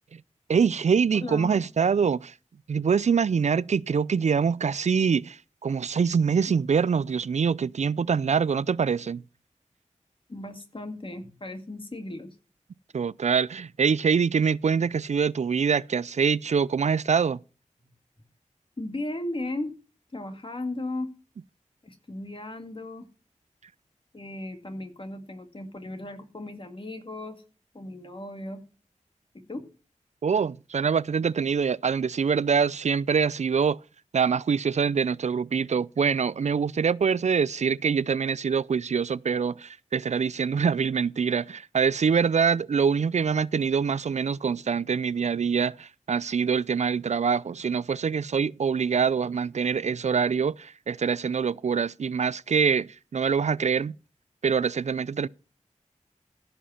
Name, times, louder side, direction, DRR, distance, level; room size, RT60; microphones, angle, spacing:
voice 1, 0.5-2.3 2.7-9.2 12.9-17.4 30.2-33.8 34.1-53.9 54.4-55.3, right 6 dB, 60° right, 0.4 m, -24 dB
voice 2, 1.1-1.7 10.3-12.3 18.8-19.7 20.1-21.1 21.8-23.1 24.1-27.4 27.7-28.6 29.3-29.6, left 2 dB, 40° left, 2.1 m, -36 dB
15.0 x 5.5 x 5.7 m
cardioid pair, 50°, 13 cm